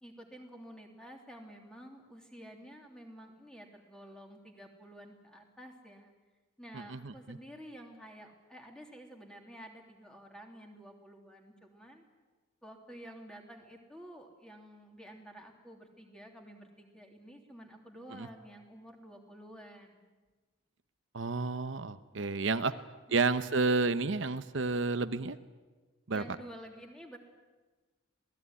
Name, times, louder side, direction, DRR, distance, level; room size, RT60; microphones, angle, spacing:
voice 1, 0.0-6.1 6.6-12.0 12.6-20.1 22.1-22.8 26.1-27.2, equal, 5° left, 2 dB, 3.2 m, -51 dB
voice 2, 6.7-7.4 18.1-18.3 21.1-22.7 23.1-25.4 26.1-26.2, right 3 dB, 70° right, 10 dB, 0.9 m, -31 dB
27.0 x 18.5 x 9.7 m, 1.3 s
head